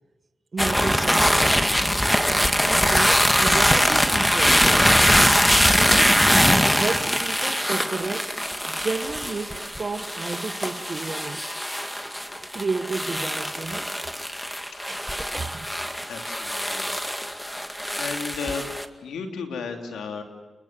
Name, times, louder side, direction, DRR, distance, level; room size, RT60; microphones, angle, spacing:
voice 1, 0.5-1.7 2.7-4.9 5.7-8.4 8.7-11.5 12.5-14.0 14.9-15.7, right 4 dB, 50° right, 1.4 m, -32 dB
sound 1, 0.6-18.8, equal, 5° left, 2.1 m, -22 dB
voice 2, 16.1-16.9 18.0-18.7 19.0-20.2, left 5 dB, 90° left, 3.2 m, -33 dB
28.5 x 21.5 x 7.6 m
cardioid pair, 50°, 0 cm